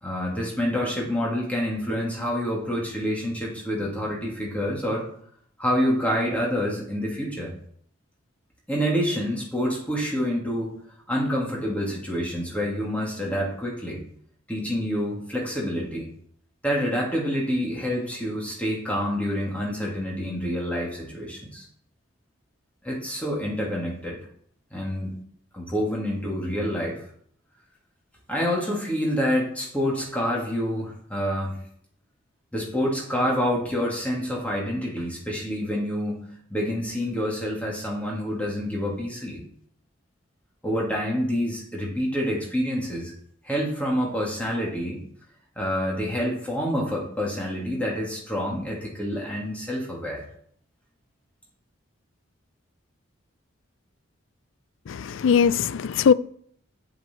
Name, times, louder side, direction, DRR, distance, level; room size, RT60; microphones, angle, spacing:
voice 1, 0.0-5.0 5.6-7.5 8.7-10.7 11.1-14.0 14.5-16.1 16.6-21.7 22.8-24.2 24.7-25.1 25.5-27.0 28.3-31.6 32.5-39.4 40.6-43.1 43.4-45.0 45.6-50.2, equal, 5° left, 2.5 m, -27 dB
voice 2, 54.9-56.1, left 6 dB, 70° left, 0.4 m, -20 dB
9.2 x 7.8 x 4.5 m
head